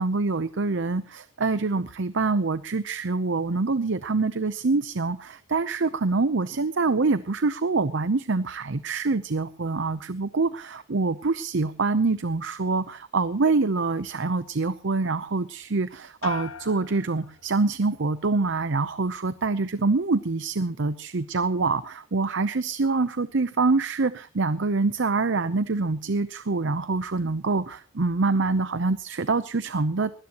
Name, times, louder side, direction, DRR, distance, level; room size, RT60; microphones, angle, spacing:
voice 1, 0.0-30.2, right 3 dB, 60° right, 14 dB, 0.7 m, -25 dB
sound 1, 16.2-18.0 18.4-18.9, left 6 dB, 90° left, 1.3 m, -41 dB
21.5 x 17.0 x 3.0 m, 0.38 s
head